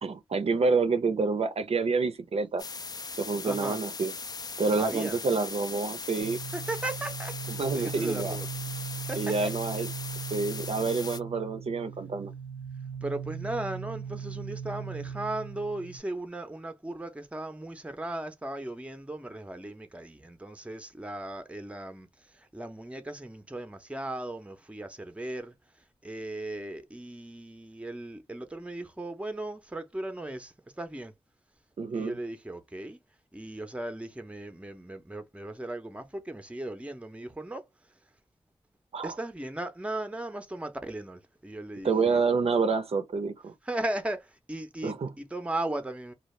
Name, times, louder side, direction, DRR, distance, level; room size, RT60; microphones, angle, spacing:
voice 1, 0.0-2.6 3.2-4.1 4.6-6.4 7.5-8.4 9.2-9.9 10.3-12.3 31.8-32.2 38.9-39.1 41.8-43.5 44.8-45.1, right 4 dB, 65° right, 0.5 m, -28 dB
sound 1, 2.6-11.2, left 4 dB, 35° left, 0.4 m, -39 dB
voice 2, 3.4-3.8 4.8-5.2 6.5-8.5 9.0-9.5 13.0-31.1 31.9-33.0 33.3-37.7 39.0-42.2 43.6-46.1, right 1 dB, 10° right, 0.6 m, -37 dB
sound 2, 6.2-16.0, right 7 dB, 70° left, 0.8 m, -39 dB
2.6 x 2.3 x 3.1 m
wide cardioid pair, 80°, 11 cm